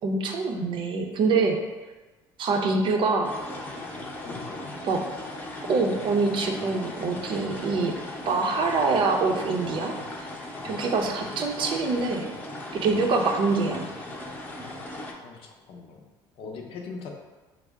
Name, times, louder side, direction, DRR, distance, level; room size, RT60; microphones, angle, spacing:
voice 1, 0.0-1.6 2.4-3.3 4.8-5.0 5.7-7.9 8.3-10.3 10.6-12.3 12.7-13.9, right 4 dB, 55° right, 3 dB, 0.6 m, -25 dB
sound 1, 3.2-15.1, left 1 dB, 20° left, 0.7 m, -37 dB
voice 2, 4.2-4.8 15.2-16.0 16.4-17.1, left 4 dB, 60° left, 1 dB, 0.6 m, -40 dB
4.5 x 2.0 x 3.5 m, 1.2 s
supercardioid pair, 95°, 10 cm